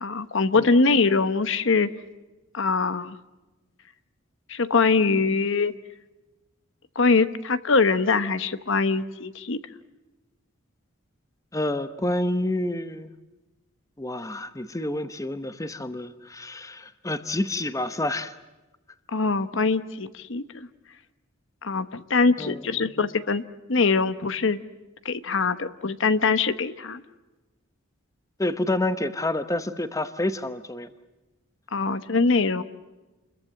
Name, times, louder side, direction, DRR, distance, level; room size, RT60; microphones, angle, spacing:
voice 1, 0.0-1.9 2.5-3.2 4.5-5.7 7.0-9.6 19.1-20.7 21.6-23.4 23.7-24.6 25.0-27.0 31.7-32.6, left 4 dB, 65° left, 12 dB, 1.0 m, -23 dB
voice 2, 11.5-13.1 14.0-18.3 22.4-22.6 28.4-30.9, left 1 dB, 15° left, 11 dB, 0.9 m, -28 dB
29.0 x 22.0 x 7.7 m, 1.1 s
head